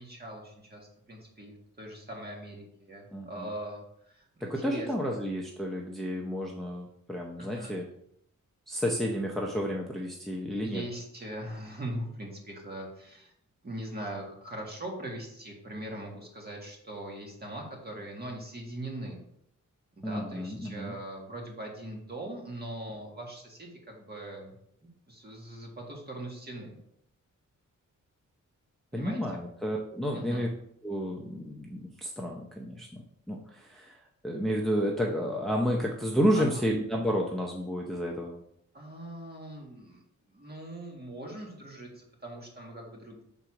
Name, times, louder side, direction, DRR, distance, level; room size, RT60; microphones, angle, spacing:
voice 1, 0.0-5.2 7.4-7.8 10.6-13.3 13.6-19.2 19.9-24.6 25.1-26.8 28.9-29.4 30.1-30.5 36.3-36.6 38.7-40.0 40.3-43.2, right 1 dB, 30° right, 0 dB, 1.7 m, -41 dB
voice 2, 3.1-3.5 4.4-7.8 8.7-10.8 20.0-20.9 28.9-30.5 30.8-38.4, equal, ahead, -1 dB, 0.6 m, -31 dB
6.0 x 4.0 x 4.8 m, 0.73 s
wide cardioid pair, 135°, 31 cm